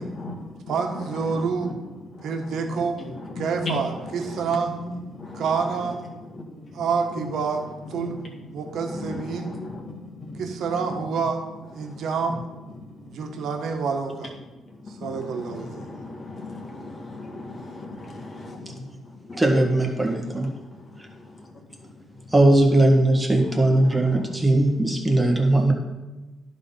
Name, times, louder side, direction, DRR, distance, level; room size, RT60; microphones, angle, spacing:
voice 1, 0.0-0.7 1.0-1.8 2.1-2.3 2.7-5.4 6.3-6.8 7.2-7.3 8.0-8.3 8.9-10.4 10.8-11.0 11.8-12.0 12.8-13.0 14.8-19.4 20.6-21.9 23.3-24.4 25.4-25.5, left 2 dB, 40° left, 1.9 m, -38 dB
voice 2, 0.7-1.7 2.2-3.0 3.4-4.8 5.3-6.0 6.7-7.6 7.9-8.2 8.5-9.6 10.3-11.4 11.7-12.4 13.0-14.3 14.9-15.9, right 5 dB, 70° right, 1.2 m, -27 dB
voice 3, 19.4-20.5 22.3-25.7, right 1 dB, 10° right, 1.7 m, -19 dB
11.0 x 4.1 x 5.6 m
cardioid pair, 90°, 0 cm